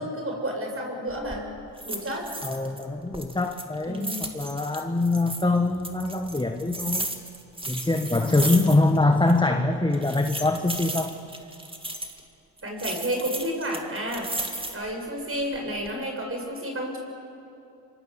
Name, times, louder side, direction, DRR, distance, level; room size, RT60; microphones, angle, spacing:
voice 1, 0.0-1.5 1.8-2.3 3.8-4.2 12.6-14.3 14.7-17.0, equal, 30° right, 1 dB, 7.0 m, -31 dB
sound 1, 1.1-1.4 1.8-2.8 3.1-5.4 5.8-9.0 9.3-9.4 9.9-12.2 12.8-14.9 15.4-15.9, right 1 dB, 10° right, 2.6 m, -34 dB
voice 2, 2.4-7.1 7.7-11.1, left 2 dB, 10° left, 5 dB, 1.5 m, -24 dB
26.0 x 25.0 x 7.2 m, 2.7 s
supercardioid pair, 70°, 47 cm